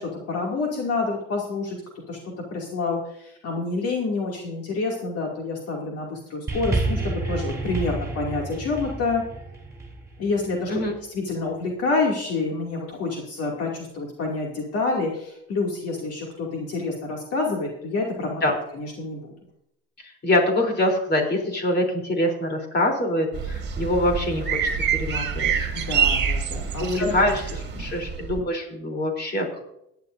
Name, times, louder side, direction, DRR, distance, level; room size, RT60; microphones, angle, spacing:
voice 1, 0.0-1.8 2.1-9.2 10.2-10.8 11.1-18.4 18.7-19.3 25.7-27.2 27.7-27.8, left 3 dB, 55° left, -1 dB, 2.5 m, -28 dB
sound 1, 6.5-11.0 11.9-12.0, right 3 dB, 10° right, 4.1 m, -30 dB
voice 2, 20.2-25.5 26.8-29.6, left 1 dB, 35° left, 2 dB, 3.5 m, -24 dB
sound 2, 23.3-28.4, right 6 dB, 35° right, 1.9 m, -26 dB
17.5 x 10.5 x 2.6 m, 0.80 s
supercardioid pair, 95°, 29 cm